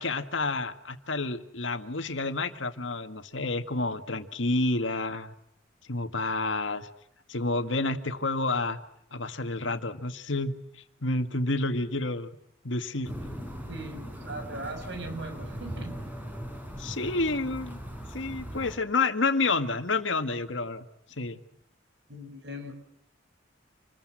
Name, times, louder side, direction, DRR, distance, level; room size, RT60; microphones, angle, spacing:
voice 1, 0.0-5.3 5.9-6.9 7.3-8.8 9.1-12.3 12.6-13.2 16.8-17.8 18.1-20.8 21.2-21.4, left 3 dB, 75° left, 8 dB, 1.9 m, -29 dB
sound 1, 13.0-18.8, equal, 10° right, 5.7 m, -39 dB
voice 2, 13.7-16.0 22.1-22.7, right 1 dB, 65° right, 6 dB, 6.6 m, -39 dB
28.0 x 21.5 x 7.7 m, 0.75 s
head